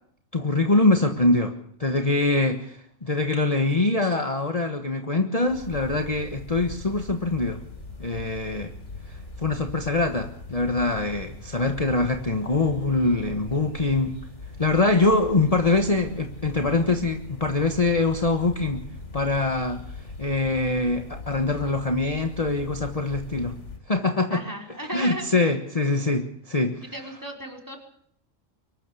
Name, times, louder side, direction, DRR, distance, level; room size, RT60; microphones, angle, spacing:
voice 1, 0.3-1.5 1.8-7.6 8.0-8.7 9.4-14.2 14.6-18.8 19.1-19.8 20.2-23.6 23.9-24.4 24.9-26.8, left 2 dB, 30° left, 6 dB, 1.5 m, -23 dB
sound 1, 5.5-23.8, left 3 dB, 60° left, 4.2 m, -40 dB
voice 2, 24.3-25.3 26.9-27.8, right 1 dB, 15° right, 2 dB, 4.7 m, -35 dB
24.0 x 13.5 x 8.4 m, 0.65 s
omnidirectional pair, 1.4 m